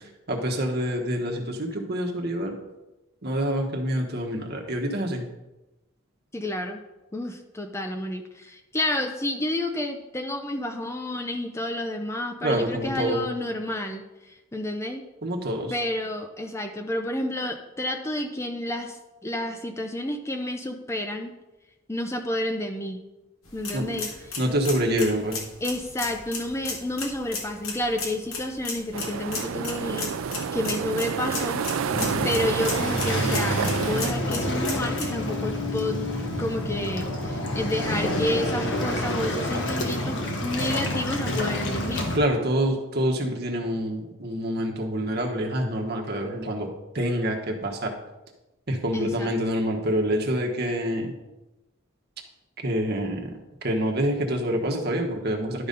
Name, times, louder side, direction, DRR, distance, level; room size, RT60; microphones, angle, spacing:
voice 1, 0.0-2.6 3.2-5.3 12.4-13.2 15.2-15.7 23.7-24.0 24.4-25.4 31.9-32.3 42.1-46.7 46.9-47.9 48.7-51.1 52.6-53.3 53.6-55.7, equal, 50° right, 1 dB, 1.3 m, -26 dB
voice 2, 6.3-6.8 7.1-15.0 15.7-21.4 21.9-23.0 23.5-24.4 25.6-30.1 30.5-31.6 32.2-36.0 36.4-42.1 48.9-49.3, left 1 dB, 15° left, 5 dB, 0.5 m, -30 dB
sound 1, 23.4-35.1, left 4 dB, 90° left, 1.9 m, -36 dB
sound 2, 28.9-34.1, right 6 dB, 85° right, 0.4 m, -29 dB
Waves surf, 31.9-42.2, left 1 dB, 65° left, 1.3 m, -28 dB
11.5 x 4.0 x 5.3 m, 1.0 s
head